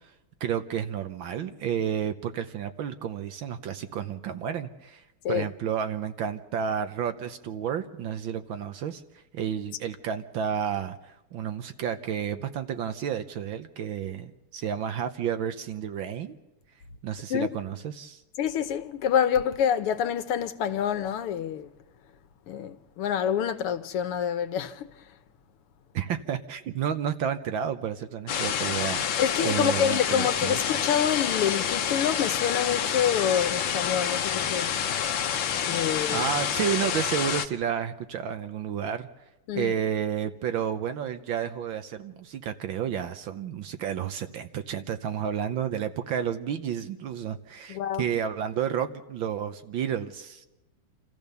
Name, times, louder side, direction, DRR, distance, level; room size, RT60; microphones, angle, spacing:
voice 1, 0.4-5.0 5.3-9.0 9.3-16.4 17.0-18.2 25.9-29.0 29.4-30.5 36.1-39.1 39.6-50.5, right 8 dB, 70° right, 1.6 m, -31 dB
voice 2, 18.4-21.7 22.5-24.9 29.2-35.0 35.7-36.3 39.5-39.7 47.7-48.1, left 9 dB, 85° left, 1.9 m, -27 dB
sound 1, 28.3-37.5, left 8 dB, 65° left, 1.6 m, -28 dB
28.0 x 14.5 x 6.9 m
omnidirectional pair, 2.4 m